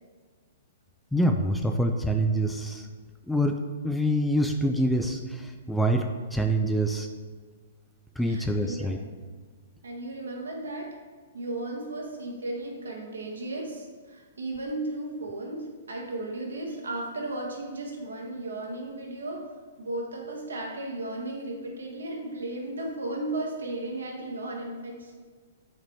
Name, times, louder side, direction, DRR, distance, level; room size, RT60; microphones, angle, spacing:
voice 1, 1.1-2.9 3.3-7.1 8.2-9.0, right 1 dB, 5° left, 4 dB, 0.3 m, -26 dB
voice 2, 8.2-9.1 9.8-10.9 11.3-19.4 19.8-25.1, right 2 dB, 90° right, -1 dB, 1.3 m, -35 dB
5.2 x 4.1 x 4.5 m, 1.6 s
hypercardioid pair, 130°, 0 cm